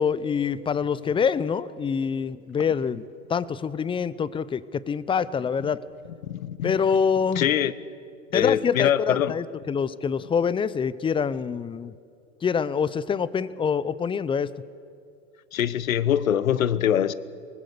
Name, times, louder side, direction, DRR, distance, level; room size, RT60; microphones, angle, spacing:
voice 1, 0.0-3.0 3.3-5.8 6.6-7.5 8.3-11.9 12.4-14.5, left 6 dB, 15° left, 0.5 m, -25 dB
voice 2, 6.3-6.8 7.4-7.7 8.3-9.3 15.5-17.1, left 10 dB, 80° left, 1.0 m, -23 dB
24.0 x 20.0 x 6.7 m
hypercardioid pair, 100°, 40 cm